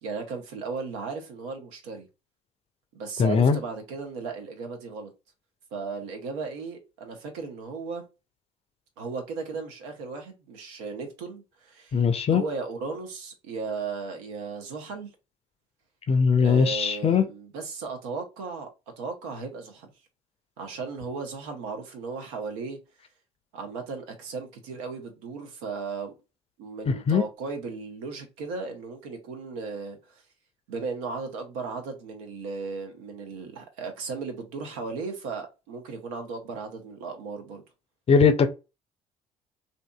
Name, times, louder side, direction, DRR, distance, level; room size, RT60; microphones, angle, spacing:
voice 1, 0.0-2.1 2.9-5.1 5.7-8.1 9.0-12.0 12.3-15.1 16.4-18.7 19.0-19.9 20.6-22.8 23.5-26.1 26.6-30.0 30.7-37.6, right 4 dB, 75° right, 0.7 m, -36 dB
voice 2, 3.2-3.6 11.9-12.4 16.1-17.2 27.1-27.2 38.1-38.5, left 6 dB, 35° left, 0.5 m, -20 dB
2.6 x 2.5 x 2.2 m
hypercardioid pair, 55°, 18 cm